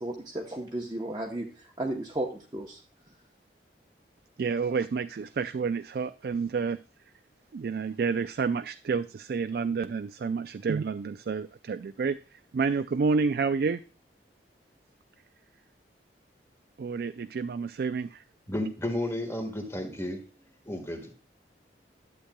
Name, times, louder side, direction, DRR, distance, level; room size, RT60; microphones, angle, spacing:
voice 1, 0.0-2.8, right 1 dB, 25° right, -1 dB, 0.8 m, -34 dB
voice 2, 4.4-6.8 7.5-13.8 16.8-18.2, right 5 dB, 60° right, 11 dB, 0.3 m, -29 dB
voice 3, 18.5-20.2 20.7-21.2, left 1 dB, 15° left, 5 dB, 1.5 m, -32 dB
11.5 x 8.0 x 2.2 m, 0.37 s
head